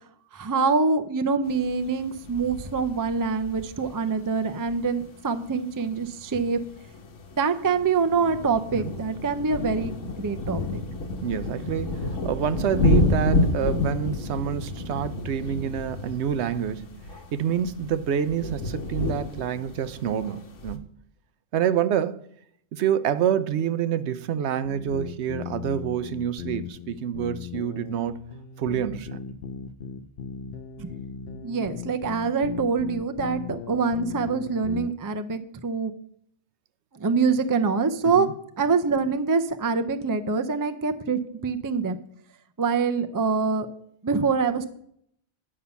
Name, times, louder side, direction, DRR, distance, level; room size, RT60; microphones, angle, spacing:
voice 1, 0.3-6.6 7.4-10.8 30.8-30.9 31.4-35.9 37.0-38.3 38.6-42.0 42.6-43.7 44.0-44.6, right 5 dB, 25° right, 0.4 m, -25 dB
sound 1, 1.4-20.8, left 2 dB, 80° left, 1.4 m, -30 dB
voice 2, 11.2-16.9 17.3-20.9 21.5-22.3 22.7-28.2 28.6-29.2 38.0-38.3, right 9 dB, 70° right, 0.8 m, -27 dB
sound 2, 24.6-34.9, left 8 dB, 60° left, 0.8 m, -37 dB
9.9 x 5.6 x 6.9 m
omnidirectional pair, 1.3 m